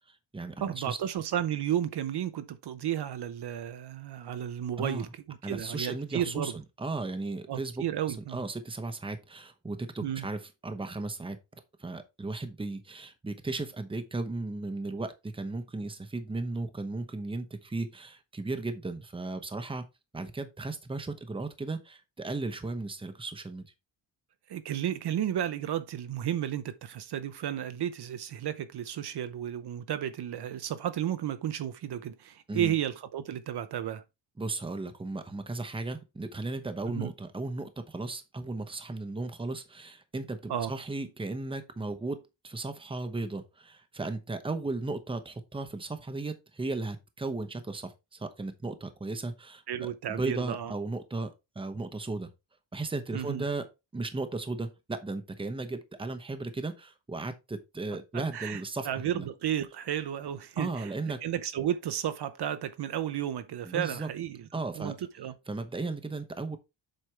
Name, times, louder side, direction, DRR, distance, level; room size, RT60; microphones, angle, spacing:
voice 1, 0.1-1.0 4.8-5.1 5.4-11.4 11.8-19.9 20.1-23.6 32.5-32.7 34.4-51.3 51.5-52.3 52.7-53.7 53.9-58.9 59.1-59.3 60.6-61.2 63.6-64.1 64.5-64.9 65.5-66.6, right 3 dB, 10° right, 0.9 m, -36 dB
voice 2, 0.6-6.5 7.5-8.4 10.0-10.3 24.5-34.0 36.9-37.1 40.5-40.7 49.7-50.7 53.1-53.4 58.1-64.4 64.7-65.3, right 10 dB, 60° right, 0.8 m, -33 dB
7.7 x 5.2 x 3.3 m
wide cardioid pair, 145°, 46 cm